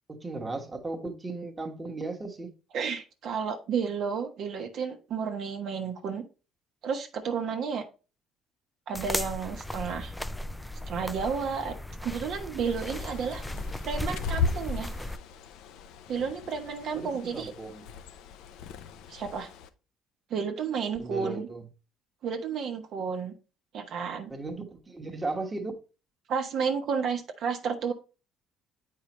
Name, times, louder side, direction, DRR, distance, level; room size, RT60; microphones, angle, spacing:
voice 1, 0.1-2.5 16.9-17.8 21.0-21.7 24.3-25.7, right 3 dB, 15° right, 1.2 m, -36 dB
voice 2, 2.7-6.2 6.8-7.9 8.9-10.1 10.9-11.7 12.0-13.4 13.8-14.9 16.1-17.5 19.1-19.5 20.3-21.5 22.2-23.3 23.7-24.3 26.3-27.9, right 6 dB, 60° right, 0.9 m, -31 dB
sound 1, 8.9-15.2, left 1 dB, 5° left, 0.3 m, -36 dB
Bird, 12.6-19.7, left 5 dB, 80° left, 0.6 m, -37 dB
8.3 x 4.8 x 3.0 m
cardioid pair, 125°, 0 cm